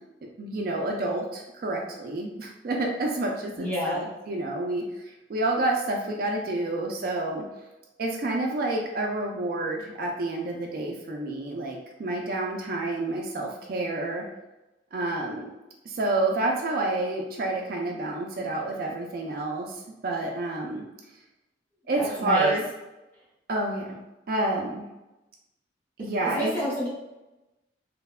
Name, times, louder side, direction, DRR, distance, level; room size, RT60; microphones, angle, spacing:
voice 1, 0.4-7.4 8.0-14.2 14.9-15.5 15.9-20.8 21.9-22.6 23.5-24.0 24.3-24.9 26.0-26.5, right 2 dB, 50° right, 0 dB, 0.3 m, -29 dB
voice 2, 3.6-4.0 22.0-22.6 26.0-26.9, left 1 dB, 10° left, -7 dB, 0.8 m, -29 dB
3.2 x 2.0 x 2.2 m, 1.0 s
head